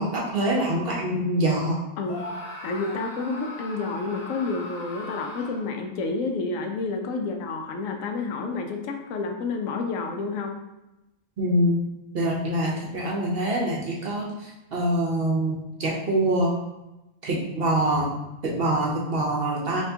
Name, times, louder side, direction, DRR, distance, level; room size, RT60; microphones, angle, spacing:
voice 1, 0.0-1.8 11.4-11.8 12.1-16.6 17.2-18.1 18.4-19.8, right 1 dB, 55° right, -3 dB, 0.8 m, -25 dB
voice 2, 2.0-2.3 2.6-10.6, left 3 dB, 80° left, 3 dB, 1.0 m, -29 dB
Screaming, 2.0-5.8, left 2 dB, 35° left, 0.8 m, -39 dB
4.3 x 2.9 x 2.7 m, 0.96 s
omnidirectional pair, 1.4 m